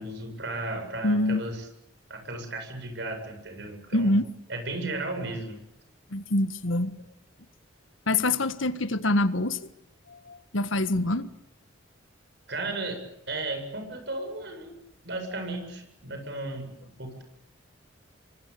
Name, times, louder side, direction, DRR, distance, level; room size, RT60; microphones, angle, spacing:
voice 1, 0.0-1.7 2.1-4.1 4.5-5.6 12.5-14.7 15.0-17.2, right 2 dB, 60° right, 5 dB, 7.8 m, -35 dB
voice 2, 1.0-1.4 3.9-4.2 6.1-6.9 8.1-9.6 10.1-11.3, left 2 dB, 80° left, 13 dB, 1.5 m, -25 dB
28.0 x 24.5 x 8.6 m, 0.82 s
head